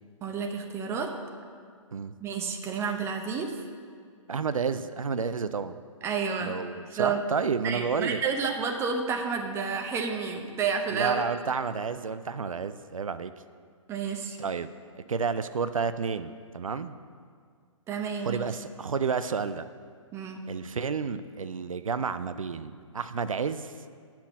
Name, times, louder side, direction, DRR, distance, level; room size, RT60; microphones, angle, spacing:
voice 1, 0.2-1.1 2.2-3.5 6.0-6.5 7.0-7.2 7.6-11.2 13.9-14.4 17.9-18.4 20.1-20.4, right 5 dB, 15° right, 4 dB, 0.7 m, -30 dB
voice 2, 4.3-5.7 6.4-8.2 10.9-13.3 14.4-14.7 15.1-17.0 18.2-19.7 20.5-23.7, right 5 dB, 85° right, 12 dB, 0.4 m, -30 dB
8.6 x 5.9 x 7.1 m, 2.1 s
figure-of-eight pair, 125°, 17 cm